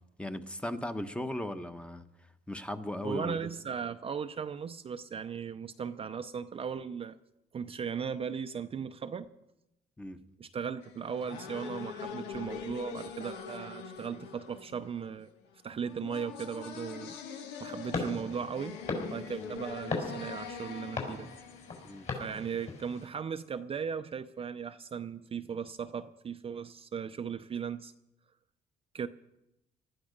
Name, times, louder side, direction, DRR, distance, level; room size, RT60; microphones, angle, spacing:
voice 1, 0.2-2.0 2.5-3.5 10.0-10.2 19.4-19.6 21.8-22.1, left 1 dB, 5° left, 9 dB, 1.0 m, -37 dB
voice 2, 3.0-7.2 7.5-9.3 10.4-15.3 15.6-17.1 17.6-18.8 19.1-21.3 22.1-27.9 28.9-29.1, right 7 dB, 35° right, 9 dB, 0.6 m, -37 dB
sound 1, 10.8-22.7, left 6 dB, 85° left, 1.8 m, -44 dB
sound 2, 17.9-23.1, left 3 dB, 45° left, 4.7 m, -39 dB
19.0 x 13.0 x 5.2 m, 0.88 s
cardioid pair, 110°, 17 cm